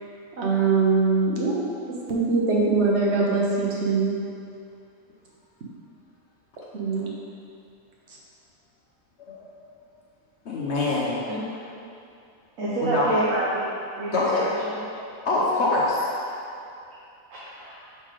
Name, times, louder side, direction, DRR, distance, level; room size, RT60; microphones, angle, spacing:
voice 1, 0.4-1.7 2.1-4.2 6.7-7.1, right 4 dB, 55° right, -3 dB, 1.1 m, -22 dB
voice 2, 10.5-11.2 12.8-13.1 14.1-14.5 15.2-16.1, left 2 dB, 60° left, -5 dB, 0.9 m, -24 dB
voice 3, 11.3-11.6 12.6-13.6 13.9-14.7 17.3-17.8, right 2 dB, 75° right, -8 dB, 1.3 m, -28 dB
5.5 x 3.5 x 4.9 m, 2.6 s
omnidirectional pair, 1.4 m